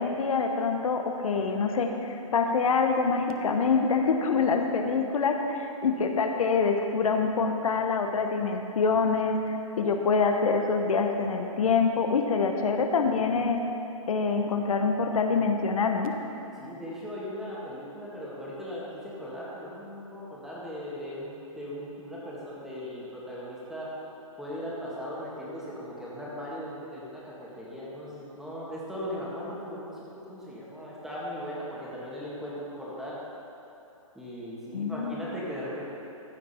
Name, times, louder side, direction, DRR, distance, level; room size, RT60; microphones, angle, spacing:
voice 1, 0.0-13.6 14.1-16.1 34.7-35.2, left 4 dB, 75° left, 4 dB, 1.0 m, -25 dB
voice 2, 16.6-23.9 24.4-33.2 34.2-35.8, equal, ahead, -7 dB, 1.8 m, -38 dB
14.5 x 7.4 x 4.3 m, 2.9 s
hypercardioid pair, 155°, 18 cm